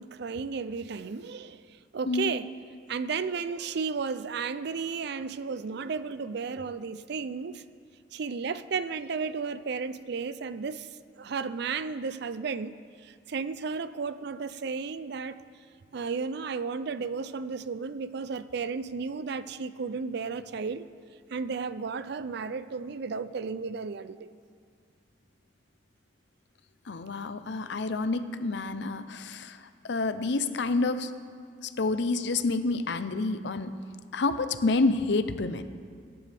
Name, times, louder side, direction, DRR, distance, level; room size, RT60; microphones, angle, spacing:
voice 1, 0.0-2.5 2.9-7.6 8.1-10.9 11.2-15.4 15.9-20.8 21.3-24.3, right 5 dB, 65° right, 0.5 m, -33 dB
voice 2, 26.8-31.1 31.6-33.8 34.1-35.6, left 3 dB, 70° left, 0.6 m, -28 dB
22.0 x 10.5 x 3.5 m
head